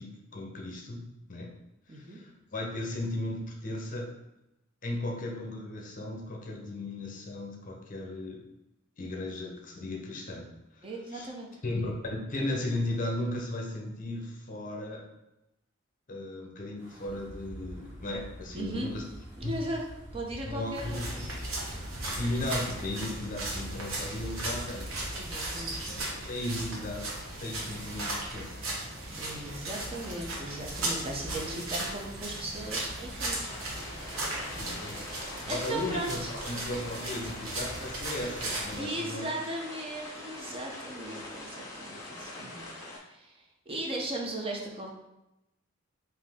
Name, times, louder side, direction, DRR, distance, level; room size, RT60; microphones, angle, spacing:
voice 1, 0.0-1.5 1.9-4.1 4.8-8.5 9.0-11.3 11.6-15.1 16.1-19.0 19.4-19.5 20.4-21.2 22.0-24.9 25.8-27.1 27.4-28.6 34.6-35.1 35.4-39.3, left 1 dB, 40° left, 0 dB, 0.7 m, -36 dB
voice 2, 1.9-2.2 10.8-11.5 18.5-18.9 19.4-19.8 20.1-21.1 25.1-26.1 29.2-33.5 33.8-34.5 35.5-36.3 38.8-42.7 43.0-44.9, right 1 dB, 30° right, 0 dB, 0.6 m, -37 dB
Wind, 16.8-25.9, equal, 10° right, 1.3 m, -46 dB
sound 1, 20.7-38.8, right 1 dB, 85° right, 0.9 m, -37 dB
sound 2, 33.5-43.0, left 2 dB, 15° left, 0.9 m, -43 dB
4.1 x 2.7 x 3.5 m, 0.90 s
head